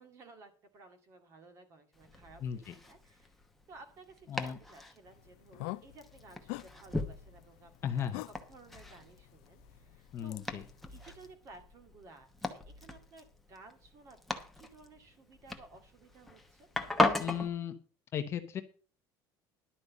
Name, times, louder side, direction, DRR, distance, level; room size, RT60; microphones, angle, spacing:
voice 1, 0.0-3.3 3.7-10.4 10.9-16.7, right 3 dB, 35° right, 7 dB, 2.1 m, -56 dB
Domestic sounds home sounds, 1.9-17.5, left 2 dB, ahead, 1.0 m, -39 dB
voice 2, 2.4-2.7 4.3-4.6 7.8-8.2 10.1-10.6 17.2-17.7 18.1-18.6, left 8 dB, 30° left, 7 dB, 0.9 m, -36 dB
sound 1, 5.1-11.3, left 21 dB, 75° left, 0.4 m, -47 dB
11.5 x 5.2 x 8.3 m, 0.37 s
cardioid pair, 175°, 9 cm